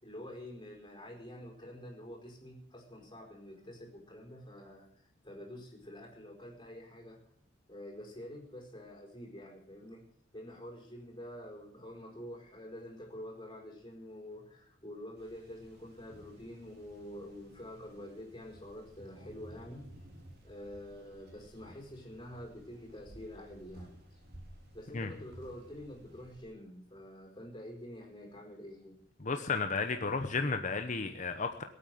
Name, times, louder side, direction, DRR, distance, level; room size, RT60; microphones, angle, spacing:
voice 1, 0.0-4.9 5.2-7.2 7.7-10.0 10.3-19.9 20.4-24.2 24.7-29.0, left 1 dB, 25° left, 0 dB, 4.6 m, -47 dB
sound 1, 15.2-26.4, right 1 dB, 60° right, 3.8 m, -55 dB
voice 2, 29.2-31.6, left 4 dB, 40° left, 6 dB, 0.9 m, -33 dB
18.0 x 8.9 x 7.7 m, 0.68 s
head